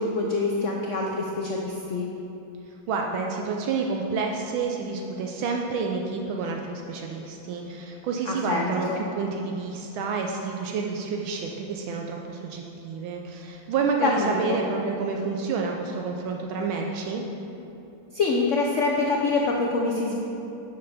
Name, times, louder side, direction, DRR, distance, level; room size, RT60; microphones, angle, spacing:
voice 1, 0.0-2.1 8.3-9.0 14.0-14.6 18.1-20.2, left 3 dB, 85° left, 0 dB, 0.6 m, -25 dB
voice 2, 2.9-17.2, right 4 dB, 80° right, 1 dB, 1.5 m, -29 dB
9.8 x 6.6 x 4.1 m, 2.8 s
omnidirectional pair, 2.2 m